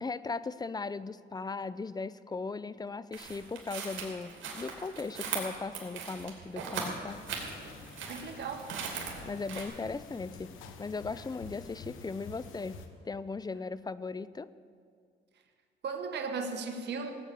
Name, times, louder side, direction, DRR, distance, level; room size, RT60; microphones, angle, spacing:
voice 1, 0.0-7.3 9.2-10.5 10.8-12.7 13.0-14.5, left 4 dB, 20° left, 17 dB, 0.5 m, -38 dB
sound 1, 3.1-9.6, right 6 dB, 80° right, 2.9 m, -39 dB
sound 2, 7.1-12.9, left 4 dB, 90° left, 1.2 m, -49 dB
voice 2, 8.1-8.7 15.8-17.1, right 5 dB, 60° right, 4 dB, 1.3 m, -36 dB
16.5 x 8.8 x 6.9 m, 2.2 s
cardioid pair, 90°, 20 cm